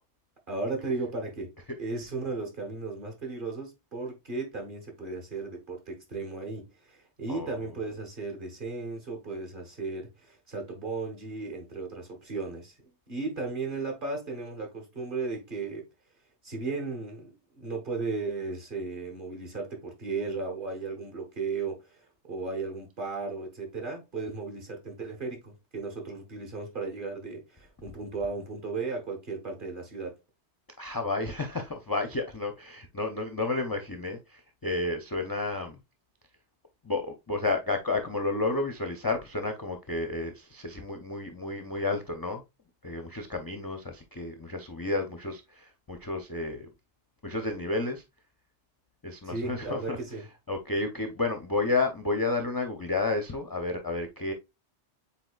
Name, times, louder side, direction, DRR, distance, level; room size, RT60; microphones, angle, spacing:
voice 1, 0.5-1.5 1.8-12.7 13.1-15.8 16.4-30.1 49.3-50.2, right 3 dB, 45° right, 1.5 m, -35 dB
voice 2, 7.3-7.7 30.8-35.8 36.8-42.4 42.8-46.7 47.2-48.0 49.0-54.3, left 3 dB, 30° left, 0.4 m, -31 dB
7.6 x 2.8 x 2.3 m
omnidirectional pair, 1.2 m